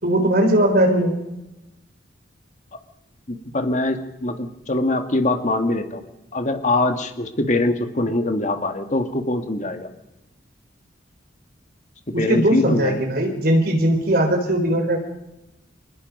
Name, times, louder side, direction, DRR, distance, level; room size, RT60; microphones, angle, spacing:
voice 1, 0.0-1.2 12.3-15.0, right 1 dB, 55° right, 4 dB, 4.2 m, -19 dB
voice 2, 3.3-6.0 6.3-9.9 12.1-13.0, left 2 dB, 40° left, 6 dB, 1.7 m, -23 dB
26.0 x 20.0 x 5.4 m, 0.95 s
head